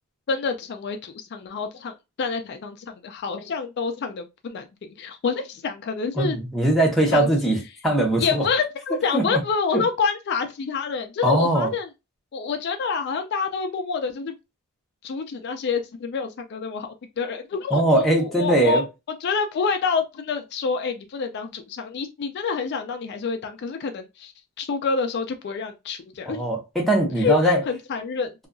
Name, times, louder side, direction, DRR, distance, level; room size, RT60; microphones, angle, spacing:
voice 1, 0.3-6.4 7.1-7.3 8.2-11.9 12.3-14.3 15.0-18.8 19.2-24.3 24.6-26.5 27.2-28.3, left 5 dB, 50° left, 0.3 m, -27 dB
voice 2, 6.2-7.6 7.8-8.5 9.1-9.4 9.7-9.8 11.2-11.7 17.7-18.8 26.3-27.6, right 1 dB, ahead, 0.7 m, -20 dB
2.7 x 2.3 x 2.5 m
head